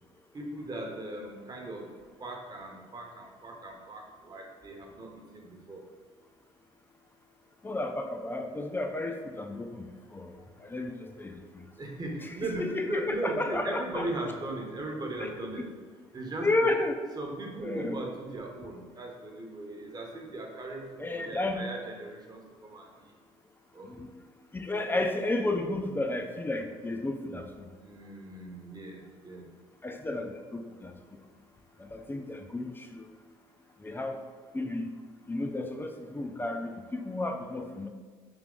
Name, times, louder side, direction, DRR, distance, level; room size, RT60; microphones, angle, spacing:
voice 1, 0.3-1.9 2.2-5.8 11.8-15.7 16.1-16.7 17.2-22.9 23.7-23.9 27.8-29.4, right 2 dB, 30° right, 1 dB, 0.9 m, -38 dB
voice 2, 7.6-9.7 10.1-10.3 10.7-10.9 11.2-11.3 12.6-14.1 15.2-15.3 16.4-17.0 17.6-18.0 21.0-21.6 24.0-24.1 24.5-27.4 29.8-30.9 31.9-33.0 33.8-34.2 34.5-34.8 35.3-37.9, left 2 dB, 15° left, 5 dB, 0.4 m, -32 dB
3.6 x 2.8 x 3.7 m, 1.4 s
hypercardioid pair, 65°, 14 cm